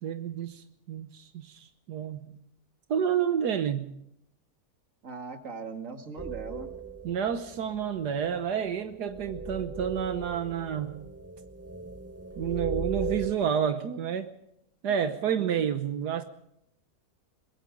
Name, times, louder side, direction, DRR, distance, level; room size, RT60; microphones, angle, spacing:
voice 1, 0.0-2.3 2.9-3.8 7.0-11.0 12.4-14.3 14.8-16.2, right 8 dB, 85° right, 8 dB, 1.6 m, -30 dB
voice 2, 5.0-6.7 14.9-15.0 15.2-15.5, right 5 dB, 55° right, 6 dB, 2.4 m, -40 dB
sound 1, 6.2-13.3, right 4 dB, 10° right, 0.9 m, -37 dB
23.5 x 21.0 x 5.2 m, 0.77 s
omnidirectional pair, 1.7 m